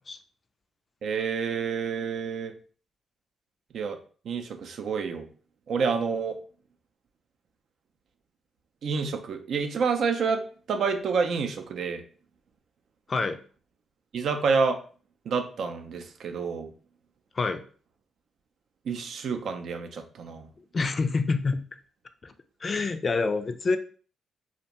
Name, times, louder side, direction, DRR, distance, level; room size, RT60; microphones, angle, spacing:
voice 1, 1.0-2.5 3.7-4.0 4.3-5.2 5.7-6.4 8.8-10.4 10.7-12.0 14.1-14.8 15.3-16.7 18.9-20.5, right 5 dB, 65° right, 5 dB, 0.4 m, -28 dB
voice 2, 13.1-13.4 17.4-17.6 20.7-21.6 22.2-22.3 22.6-23.8, left 4 dB, 45° left, 9 dB, 0.3 m, -26 dB
2.5 x 2.1 x 2.8 m, 0.41 s
hypercardioid pair, 45°, 0 cm